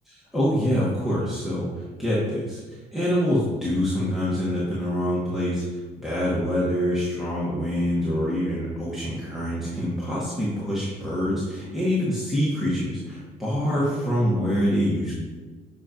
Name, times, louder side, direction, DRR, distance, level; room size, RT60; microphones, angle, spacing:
voice 1, 0.3-15.1, equal, ahead, -8 dB, 1.6 m, -25 dB
8.2 x 5.2 x 3.1 m, 1.3 s
cardioid pair, 110°, 17 cm